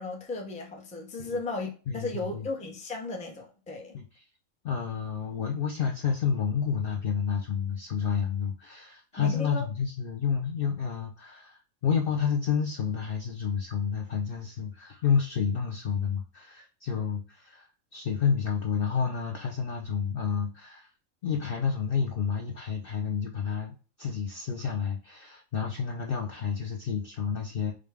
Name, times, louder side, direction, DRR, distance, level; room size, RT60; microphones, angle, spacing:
voice 1, 0.0-4.0 9.2-9.7, left 2 dB, 10° left, 0.4 m, -35 dB
voice 2, 1.9-2.5 3.9-4.0 4.6-20.9 21.2-27.7, left 6 dB, 60° left, 0.6 m, -30 dB
5.0 x 2.2 x 3.3 m
omnidirectional pair, 1.4 m